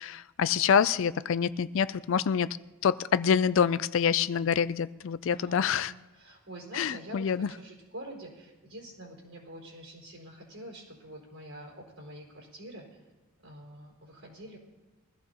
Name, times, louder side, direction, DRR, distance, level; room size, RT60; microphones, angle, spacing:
voice 1, 0.0-2.5 2.8-5.9 6.7-7.5, left 7 dB, 60° left, 15 dB, 0.3 m, -26 dB
voice 2, 5.3-13.0 13.4-14.6, right 1 dB, 70° right, -2 dB, 4.3 m, -46 dB
22.5 x 14.5 x 2.9 m, 1.2 s
head